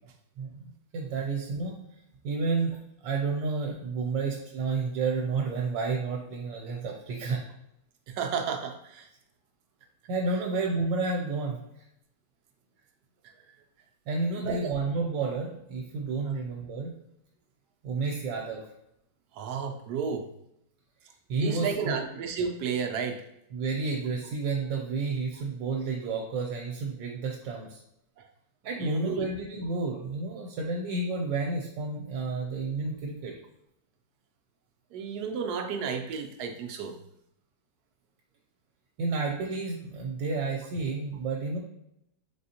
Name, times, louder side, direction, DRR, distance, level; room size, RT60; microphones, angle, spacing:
voice 1, 0.4-1.8 2.2-7.5 10.1-11.8 14.1-16.9 17.8-18.6 21.3-21.9 23.5-27.8 28.6-33.3 39.0-41.6, right 3 dB, 85° right, 0 dB, 1.4 m, -31 dB
voice 2, 8.1-9.1 13.2-13.3 14.4-14.7 16.3-16.4 19.3-20.3 21.4-23.2 28.2-28.3 28.8-29.3 34.9-37.0, right 6 dB, 70° right, 5 dB, 1.1 m, -32 dB
4.2 x 3.4 x 2.8 m, 0.78 s
omnidirectional pair, 1.9 m